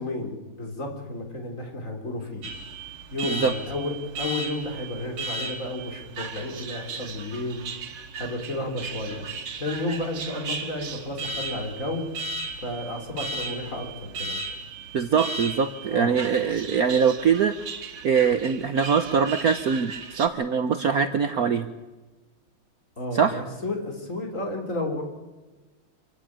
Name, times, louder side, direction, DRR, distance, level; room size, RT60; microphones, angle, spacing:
voice 1, 0.0-2.5 3.1-7.6 8.2-9.2 9.6-12.0 12.6-14.4 15.9-16.2 23.0-25.0, left 1 dB, 35° left, 3 dB, 4.2 m, -32 dB
Alarm, 2.4-20.3, right 3 dB, 85° right, 2.7 m, -36 dB
voice 2, 14.9-17.6 18.0-21.7 23.1-23.4, right 6 dB, 55° right, 9 dB, 1.1 m, -23 dB
25.5 x 15.0 x 8.9 m, 1.2 s
omnidirectional pair, 2.3 m